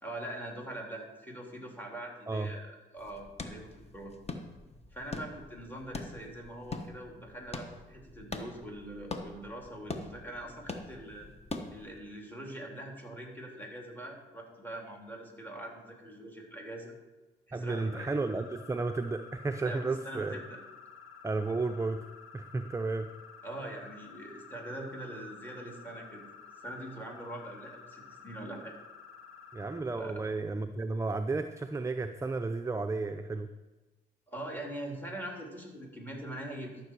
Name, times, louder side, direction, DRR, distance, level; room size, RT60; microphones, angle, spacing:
voice 1, 0.0-4.1 4.9-11.3 11.7-16.9 17.5-18.2 19.6-20.6 23.4-26.2 26.6-28.7 29.9-30.2 34.3-36.9, right 1 dB, 10° left, 0 dB, 3.3 m, -43 dB
sound 1, 3.0-12.0, left 3 dB, 30° left, 1.3 m, -43 dB
voice 2, 17.5-20.4 21.2-22.0 22.3-23.1 29.5-33.5, right 3 dB, 15° right, 7 dB, 0.6 m, -33 dB
sound 2, 17.7-29.8, left 6 dB, 75° left, 1.2 m, -52 dB
13.0 x 6.7 x 4.7 m, 1.1 s
supercardioid pair, 60°, 21 cm